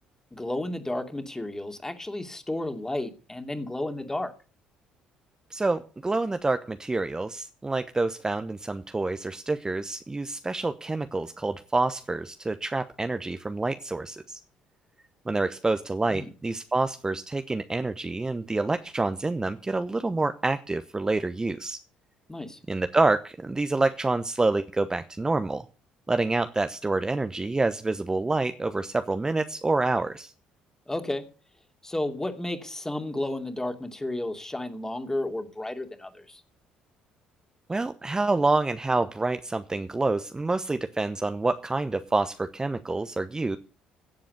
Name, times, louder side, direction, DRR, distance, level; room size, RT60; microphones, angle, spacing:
voice 1, 0.3-4.3 16.1-16.3 22.3-22.6 30.9-31.3 31.8-36.4, left 1 dB, 15° left, 6 dB, 2.7 m, -32 dB
voice 2, 5.5-14.4 15.3-21.8 22.7-25.6 26.1-30.3 37.7-43.6, right 3 dB, 20° right, 9 dB, 0.9 m, -27 dB
16.5 x 7.6 x 6.7 m, 0.36 s
figure-of-eight pair, 50°, 4 cm